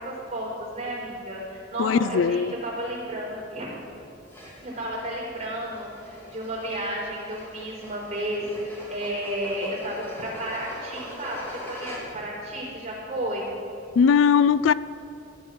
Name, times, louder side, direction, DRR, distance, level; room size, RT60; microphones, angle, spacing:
voice 1, 0.0-3.8 4.6-13.5, right 1 dB, 35° right, 4.2 m, -32 dB
voice 2, 1.8-2.5 14.0-14.7, left 6 dB, 85° left, 0.4 m, -19 dB
sound 1, 4.3-12.4, equal, 10° left, 2.7 m, -43 dB
14.5 x 10.5 x 6.2 m
head